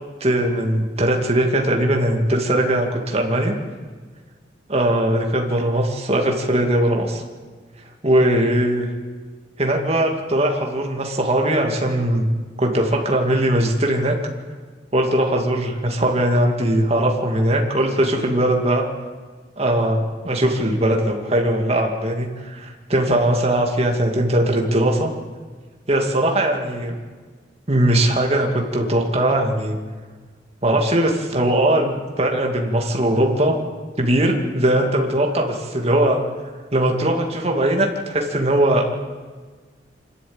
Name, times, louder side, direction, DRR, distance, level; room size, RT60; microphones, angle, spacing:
voice 1, 0.2-3.6 4.7-7.2 8.0-8.9 9.6-12.2 12.6-14.1 14.9-18.8 19.6-25.1 25.9-26.9 27.7-29.8 30.6-33.6 34.0-36.2 36.7-38.9, right 1 dB, 35° right, 1 dB, 2.5 m, -20 dB
26.5 x 12.5 x 8.9 m, 1.5 s
head